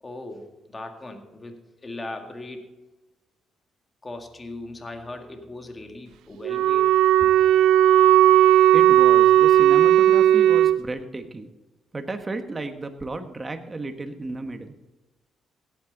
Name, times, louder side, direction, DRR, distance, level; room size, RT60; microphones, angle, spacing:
voice 1, 0.0-2.8 4.0-7.3, left 2 dB, 25° left, 1.9 m, -39 dB
Wind instrument woodwind instrument, 6.4-10.8, right 12 dB, 80° right, 0.4 m, -16 dB
voice 2, 8.7-11.5 11.9-14.8, right 2 dB, 25° right, 1.3 m, -33 dB
17.0 x 8.8 x 4.0 m
cardioid pair, 90°, 0 cm